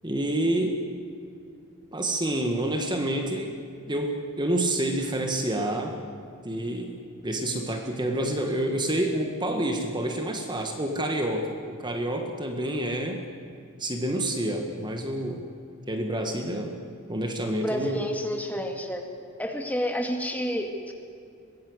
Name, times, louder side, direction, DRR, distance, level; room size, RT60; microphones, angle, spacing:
voice 1, 0.0-0.8 1.9-3.6 3.9-6.0 6.4-7.0 7.2-13.2 13.8-15.5 15.9-16.8 17.1-18.0, right 1 dB, 20° right, 4 dB, 1.8 m, -28 dB
voice 2, 17.6-19.0 19.4-20.9, equal, 10° left, 3 dB, 2.3 m, -29 dB
23.5 x 20.0 x 8.1 m, 2.4 s
head